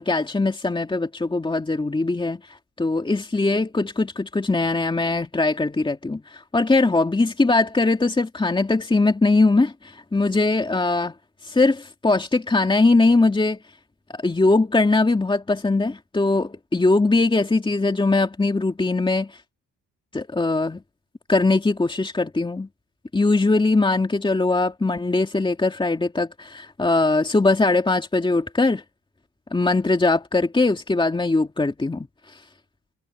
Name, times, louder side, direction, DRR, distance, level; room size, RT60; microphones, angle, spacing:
voice 1, 0.0-2.4 2.8-11.1 11.4-13.6 14.1-19.3 20.1-20.8 21.3-22.7 23.1-28.8 29.5-32.1, left 3 dB, 15° left, 2.6 m, -21 dB
cardioid pair, 90°, 30 cm